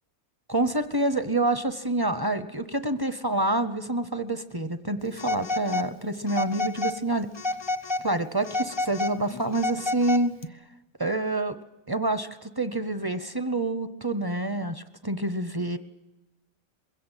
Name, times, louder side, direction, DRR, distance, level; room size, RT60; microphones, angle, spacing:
voice 1, 0.5-7.3 8.0-10.3 11.0-11.5 11.9-15.8, right 2 dB, 25° right, 11 dB, 0.6 m, -27 dB
Telephone, 5.2-5.9 6.3-7.0 7.4-8.1 8.4-10.5, left 2 dB, 30° left, 0.5 m, -30 dB
22.0 x 17.0 x 9.1 m, 1.0 s
omnidirectional pair, 1.5 m